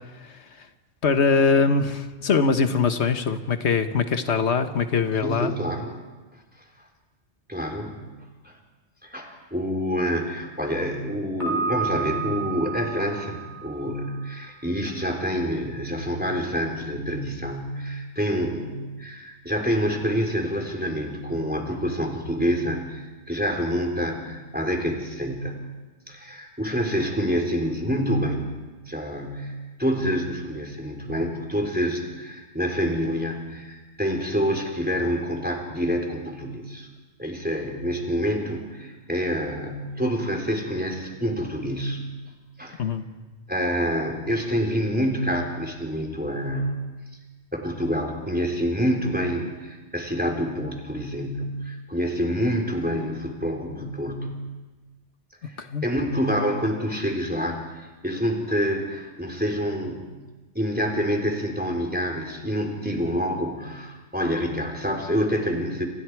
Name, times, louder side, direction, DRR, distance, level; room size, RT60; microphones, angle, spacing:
voice 1, 0.2-0.7 1.0-5.5 42.8-43.0 55.6-55.8, left 5 dB, 75° left, 8 dB, 1.6 m, -22 dB
voice 2, 5.2-5.9 7.5-8.0 8.4-8.6 9.0-25.6 26.1-28.5 28.9-36.9 37.2-42.0 42.6-42.8 43.5-46.7 47.5-54.4 55.5-60.1 60.5-65.9, equal, 10° right, 2 dB, 3.8 m, -27 dB
Piano, 11.4-14.3, right 5 dB, 40° left, 6.8 m, -31 dB
29.5 x 27.5 x 4.8 m, 1.2 s
omnidirectional pair, 1.2 m